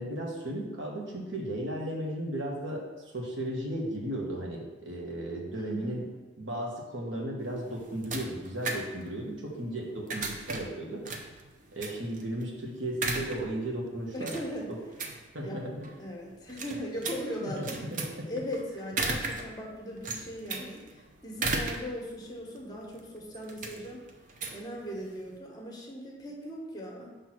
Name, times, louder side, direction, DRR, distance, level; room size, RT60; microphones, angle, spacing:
voice 1, 0.0-6.0 6.4-11.0 11.7-14.3 14.7-14.8 15.3-15.9 17.4-18.1, right 1 dB, 85° right, -1 dB, 1.4 m, -35 dB
voice 2, 5.5-6.0 14.1-14.7 15.4-15.7 16.0-17.9 18.3-20.8 21.2-24.0 24.5-27.1, equal, 20° left, -2 dB, 1.1 m, -38 dB
sound 1, 7.4-25.4, right 3 dB, 45° right, 0.6 m, -38 dB
6.1 x 3.5 x 5.9 m, 1.2 s
head